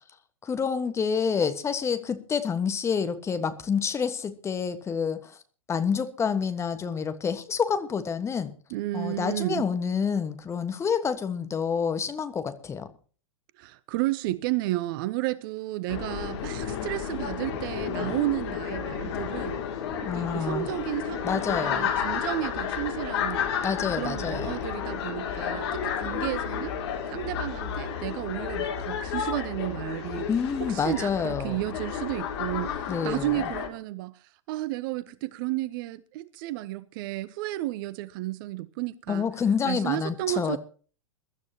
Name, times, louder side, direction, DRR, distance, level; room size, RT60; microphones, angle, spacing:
voice 1, 0.4-5.3 5.7-8.5 8.9-12.9 20.0-20.7 21.2-21.9 23.6-24.6 30.3-31.6 32.9-33.3 39.1-40.6, left 6 dB, 15° left, 1.4 m, -28 dB
voice 2, 8.7-9.7 13.6-19.6 20.0-23.5 23.8-26.7 27.1-30.3 30.6-39.3 39.6-40.6, right 17 dB, 40° right, 0.7 m, -32 dB
sound 1, 15.9-33.7, left 8 dB, 50° left, 2.7 m, -32 dB
22.0 x 13.0 x 2.9 m
figure-of-eight pair, 100°, 17 cm